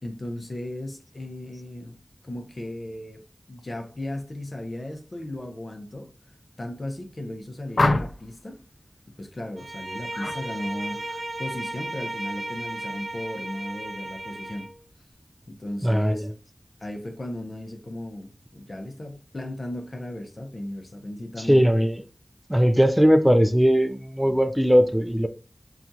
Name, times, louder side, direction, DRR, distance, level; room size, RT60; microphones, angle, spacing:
voice 1, 0.0-2.0 2.2-6.1 6.6-8.6 9.2-14.7 15.5-16.3 16.8-21.7, left 1 dB, 60° left, 0.7 m, -36 dB
sound 1, 7.8-8.4 10.1-10.4 10.8-11.2, left 2 dB, 85° left, 0.4 m, -25 dB
Bowed string instrument, 9.6-14.8, right 1 dB, 85° right, 0.8 m, -35 dB
voice 2, 15.8-16.3 21.4-22.0 22.5-25.3, equal, 5° right, 0.4 m, -19 dB
5.8 x 2.4 x 2.6 m
wide cardioid pair, 50°, 0 cm